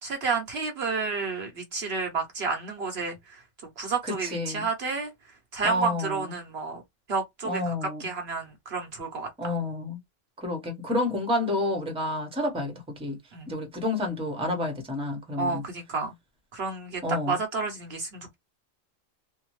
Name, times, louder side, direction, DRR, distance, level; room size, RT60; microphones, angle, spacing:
voice 1, 0.0-3.4 3.8-5.1 5.5-6.8 7.1-7.6 8.0-9.3 13.3-13.5 15.4-16.1 16.5-17.0 17.3-18.3, right 4 dB, 60° right, 0.9 m, -30 dB
voice 2, 4.0-4.7 5.6-6.3 7.4-8.1 9.4-10.0 10.4-13.2 13.5-15.6 17.0-17.4, left 1 dB, 5° right, 0.8 m, -29 dB
2.7 x 2.1 x 3.0 m
omnidirectional pair, 1.4 m